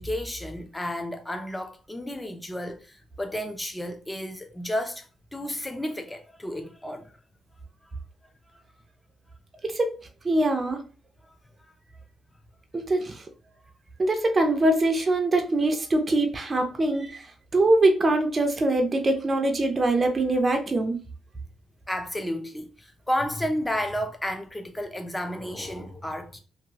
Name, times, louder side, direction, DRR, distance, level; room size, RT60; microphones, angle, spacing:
voice 1, 0.0-7.1 11.6-11.7 21.9-26.4, left 1 dB, 10° left, 0.6 m, -32 dB
voice 2, 10.2-10.8 12.7-13.2 14.0-17.2 17.5-21.0, right 2 dB, 30° right, 0.5 m, -23 dB
2.7 x 2.5 x 2.9 m
cardioid pair, 100°, 0 cm